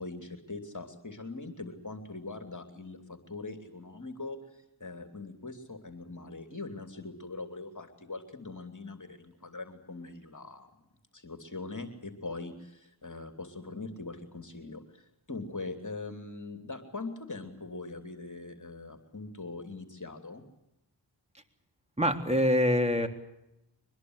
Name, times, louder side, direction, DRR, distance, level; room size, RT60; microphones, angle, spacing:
voice 1, 0.0-10.8 11.1-20.4, left 3 dB, 40° left, 6 dB, 3.2 m, -42 dB
voice 2, 22.0-23.1, left 1 dB, 15° right, 6 dB, 3.5 m, -25 dB
23.5 x 21.0 x 8.2 m, 0.86 s
cardioid pair, 45°, 46 cm